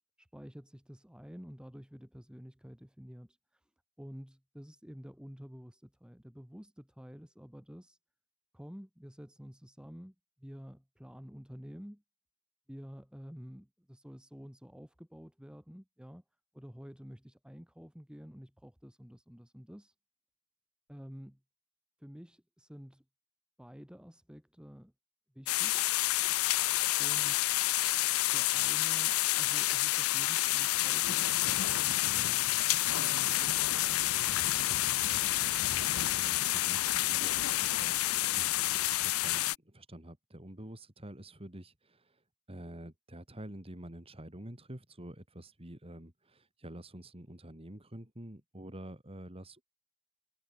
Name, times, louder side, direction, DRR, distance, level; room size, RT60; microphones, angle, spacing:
voice 1, 0.2-3.7 4.0-8.0 8.5-12.0 12.7-16.2 16.5-19.9 20.9-21.4 22.0-23.0 23.6-24.9 25.3-25.9 27.0-27.5 28.3-32.6 33.0-33.6, equal, 5° right, 1.1 m, -50 dB
sound 1, 25.5-39.6, left 16 dB, 70° left, 0.6 m, -29 dB
voice 2, 35.5-49.6, right 1 dB, 25° right, 3.0 m, -48 dB
head